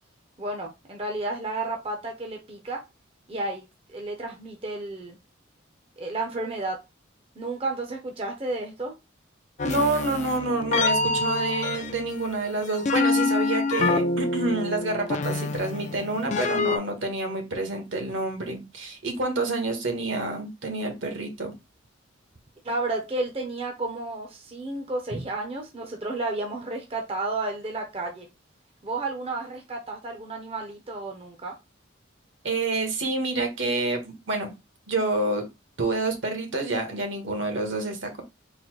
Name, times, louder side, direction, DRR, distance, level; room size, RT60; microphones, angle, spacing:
voice 1, 0.4-2.8 3.3-3.6 3.9-5.2 6.0-6.8 7.4-8.9 22.6-28.3 28.8-31.6, right 2 dB, 30° right, 0.6 m, -32 dB
sound 1, 9.6-16.8, left 3 dB, 35° left, 0.4 m, -27 dB
voice 2, 9.6-21.5 25.1-25.2 32.4-34.5 34.9-35.4 35.8-38.2, right 2 dB, 70° right, 1.2 m, -28 dB
3.9 x 2.1 x 4.5 m
head